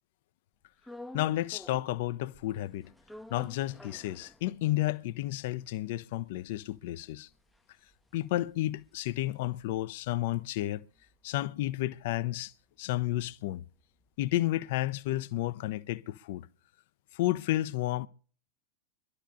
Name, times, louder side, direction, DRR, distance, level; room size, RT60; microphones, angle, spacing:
sound 1, 0.8-2.0 2.3-4.9 5.3-5.4 5.6-10.1 10.4-14.5, left 1 dB, 5° left, 0.7 m, -52 dB
voice 1, 1.1-2.9 3.3-7.3 8.1-10.8 11.2-12.5 12.8-13.6 14.2-16.5 17.1-18.1, left 15 dB, 50° left, 0.6 m, -31 dB
24.5 x 12.5 x 2.7 m
figure-of-eight pair, 90°, 0 cm